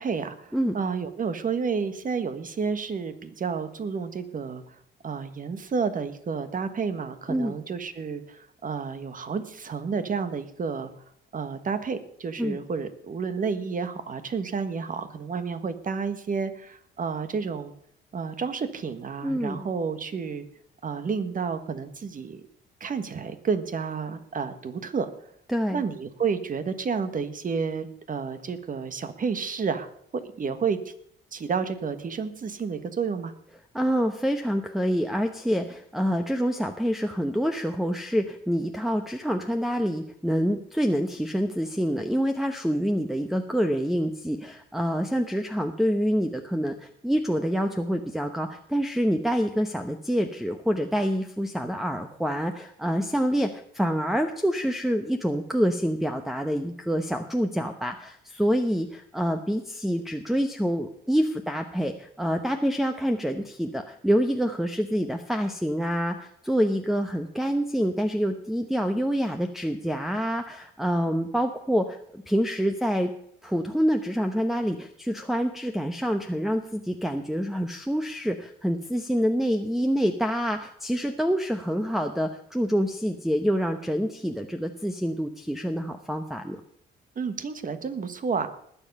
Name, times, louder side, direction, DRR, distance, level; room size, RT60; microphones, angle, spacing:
voice 1, 0.0-4.6 5.0-10.9 11.3-17.7 18.1-20.4 20.8-22.4 22.8-25.1 25.7-29.9 30.2-30.9 31.3-33.3 87.1-88.5, right 5 dB, 45° right, 10 dB, 1.5 m, -30 dB
voice 2, 19.2-19.7 25.5-25.8 33.7-73.1 73.4-86.6, equal, ahead, 6 dB, 0.9 m, -26 dB
20.0 x 7.3 x 5.5 m, 0.68 s
cardioid pair, 90°, 20 cm